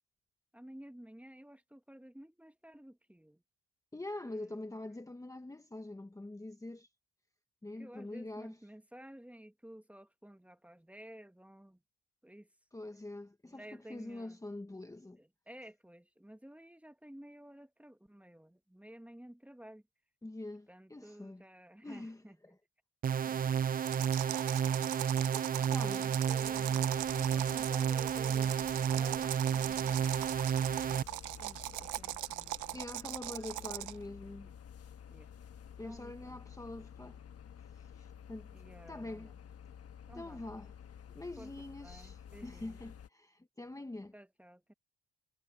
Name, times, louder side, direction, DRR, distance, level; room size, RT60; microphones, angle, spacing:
voice 1, 0.5-3.4 4.2-4.6 7.8-11.8 12.2-12.5 13.5-14.4 15.2-19.8 20.7-22.6 23.3-23.4 26.3-30.2 31.4-32.8 34.4-34.5 35.1-35.3 35.8-36.4 38.5-39.3 40.1-40.4 41.4-41.5 41.8-42.8 44.1-44.7, equal, 5° right, 1.5 m, -53 dB
voice 2, 3.9-6.9 7.6-8.6 12.7-15.2 20.2-21.4 21.8-22.6 25.7-26.2 32.7-34.5 35.8-37.2 37.7-38.5 38.9-39.3 40.1-40.8 41.1-44.1, left 2 dB, 10° left, 1.2 m, -45 dB
sound 1, 23.0-31.0, right 8 dB, 30° right, 0.4 m, -31 dB
sound 2, 23.8-34.0, right 16 dB, 80° right, 0.7 m, -40 dB
sound 3, 26.2-43.1, left 8 dB, 55° left, 1.3 m, -52 dB
cardioid pair, 90°, 30 cm